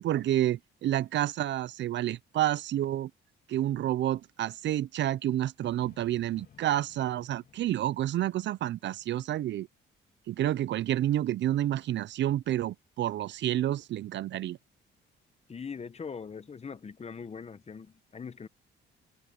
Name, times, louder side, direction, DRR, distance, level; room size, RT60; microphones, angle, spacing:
voice 1, 0.0-3.1 3.5-9.7 10.3-14.6, right 12 dB, 65° right, 0.5 m, -29 dB
sound 1, 5.6-9.5, left 8 dB, 50° left, 2.5 m, -59 dB
voice 2, 15.5-18.5, left 6 dB, 30° left, 1.0 m, -41 dB
cardioid pair, 90°, 20 cm